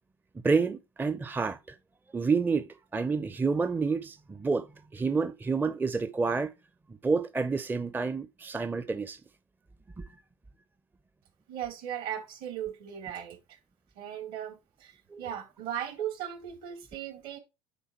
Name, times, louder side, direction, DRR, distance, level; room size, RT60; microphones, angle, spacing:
voice 1, 0.4-1.8 2.1-4.7 4.9-6.5 6.9-9.2 10.0-10.1 15.1-15.2, right 4 dB, 10° right, 0.5 m, -29 dB
voice 2, 11.5-13.6 14.0-17.4, right 10 dB, 60° right, 2.3 m, -37 dB
9.1 x 3.8 x 4.3 m
hypercardioid pair, 80°, 17 cm